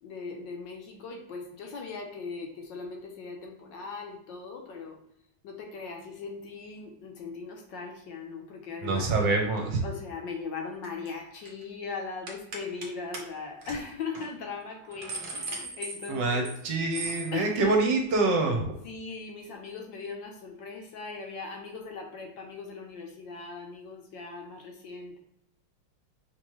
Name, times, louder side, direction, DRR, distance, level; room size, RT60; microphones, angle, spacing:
voice 1, 0.0-5.0 5.4-9.1 9.8-16.8 17.3-17.8 18.4-18.5 18.8-25.2, left 4 dB, 70° left, 2 dB, 1.3 m, -39 dB
voice 2, 8.8-9.8 16.1-18.7, right 3 dB, 65° right, 2 dB, 1.4 m, -26 dB
sound 1, 10.8-11.1 11.3-11.6 12.3-12.9 13.1-13.2 13.6-13.8 14.1-14.3 14.7-16.6 16.9-17.3, right 3 dB, 85° right, 0.4 m, -38 dB
5.2 x 3.1 x 3.1 m, 0.75 s
omnidirectional pair, 2.3 m